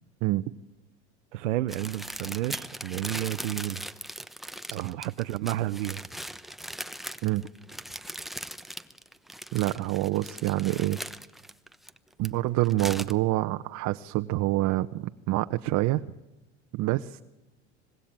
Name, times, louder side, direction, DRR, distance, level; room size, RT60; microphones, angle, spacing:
voice 1, 1.3-3.8 4.7-6.0, right 15 dB, 90° right, 0.8 m, -31 dB
sound 1, 1.7-12.3 12.6-13.1, right 1 dB, ahead, 1.0 m, -39 dB
voice 2, 9.5-11.0 12.2-16.0 16.7-17.2, right 17 dB, 50° right, 0.9 m, -27 dB
25.5 x 21.5 x 9.0 m
supercardioid pair, 105°, 35 cm